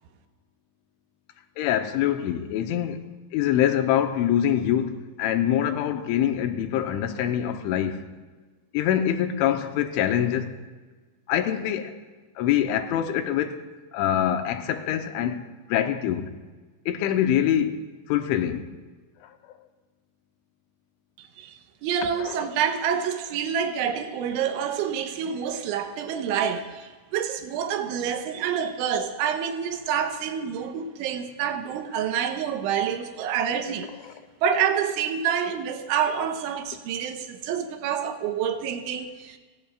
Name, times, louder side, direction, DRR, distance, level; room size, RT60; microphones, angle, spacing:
voice 1, 1.6-3.0 3.3-8.0 8.7-10.6 11.3-11.9 12.4-13.7 13.9-15.4 15.7-16.3 16.9-17.8 18.1-18.7 19.2-19.3 22.2-22.5, left 10 dB, 85° left, 3.3 m, -24 dB
voice 2, 21.2-33.9 34.4-39.4, right 8 dB, 85° right, 3.4 m, -27 dB
29.5 x 17.0 x 2.4 m
omnidirectional pair, 5.5 m